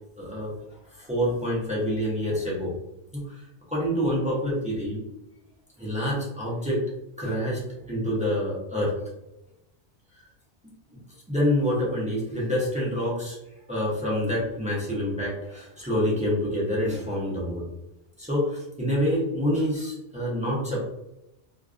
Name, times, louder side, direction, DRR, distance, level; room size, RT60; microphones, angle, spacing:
voice 1, 0.2-0.5 1.0-2.7 3.1-3.4 3.7-5.0 5.8-6.8 7.2-7.6 7.9-8.9 11.3-13.4 13.7-17.7 18.2-20.8, equal, 10° right, -6 dB, 0.3 m, -27 dB
2.4 x 2.2 x 2.3 m, 0.89 s
omnidirectional pair, 1.2 m